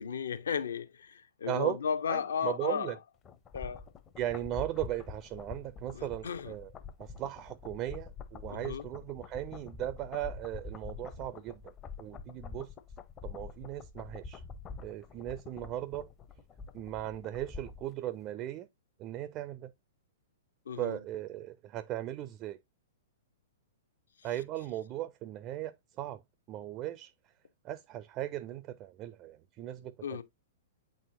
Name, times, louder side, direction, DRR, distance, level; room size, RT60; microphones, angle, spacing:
voice 1, 0.0-2.9 3.5-3.8 5.9-6.5 8.5-8.8 20.7-21.0 30.0-30.2, left 6 dB, 65° left, 0.7 m, -34 dB
voice 2, 1.4-1.8 2.1-3.0 4.2-6.7 7.0-11.7 12.0-12.7 13.2-14.4 14.8-16.1 16.7-18.7 19.0-19.7 20.8-22.6 24.2-26.2 26.5-27.3 27.6-30.2, right 13 dB, 30° right, 0.4 m, -37 dB
sound 1, 3.2-17.9 18.2-18.3, left 5 dB, 25° left, 0.6 m, -46 dB
8.8 x 4.2 x 2.6 m
figure-of-eight pair, 105°, 0 cm